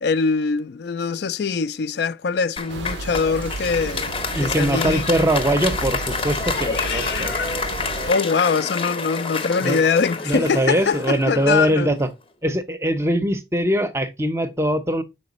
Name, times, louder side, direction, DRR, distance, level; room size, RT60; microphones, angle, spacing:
voice 1, 0.0-5.1 8.1-11.9, left 5 dB, 75° left, 0.4 m, -23 dB
Applause, 2.6-11.9, left 4 dB, 30° left, 0.6 m, -29 dB
sound 1, 2.7-8.1, right 3 dB, 90° right, 0.4 m, -32 dB
voice 2, 4.3-7.3 9.6-9.8 10.3-12.1 12.4-15.0, equal, 15° right, 0.6 m, -22 dB
Meow, 6.4-8.9 9.5-11.6, left 6 dB, 90° left, 0.8 m, -35 dB
5.8 x 4.3 x 4.0 m
head